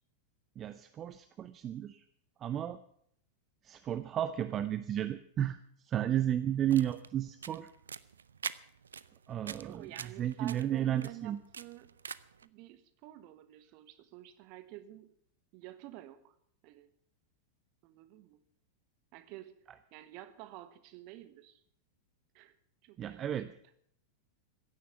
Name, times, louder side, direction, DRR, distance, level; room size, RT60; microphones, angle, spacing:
voice 1, 0.6-2.0 2.4-2.8 3.6-5.6 5.8-7.7 9.3-9.9 10.2-11.4 23.0-23.5, right 11 dB, 30° right, 13 dB, 0.6 m, -33 dB
sound 1, 6.5-12.5, right 6 dB, 70° right, 0.5 m, -46 dB
voice 2, 9.4-12.0 12.4-15.2 15.5-16.3 16.6-16.9 17.8-18.4 19.1-19.6 19.9-21.6 22.3-22.6 22.8-23.4, right 14 dB, 45° right, 12 dB, 1.3 m, -50 dB
16.0 x 10.5 x 7.1 m, 0.67 s
figure-of-eight pair, 90°, 0 cm